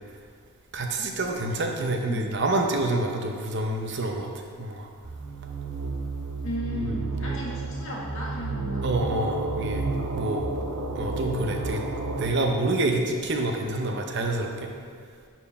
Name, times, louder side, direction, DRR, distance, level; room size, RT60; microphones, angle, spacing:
voice 1, 0.7-4.3 4.6-4.9 6.8-7.0 8.8-10.5 10.9-14.7, right 2 dB, 50° right, 2 dB, 0.7 m, -27 dB
sound 1, 5.0-12.3, right 3 dB, 85° right, 0.8 m, -31 dB
voice 2, 6.4-8.8, left 1 dB, 65° left, -4 dB, 1.9 m, -35 dB
11.0 x 4.5 x 4.2 m, 2.1 s
head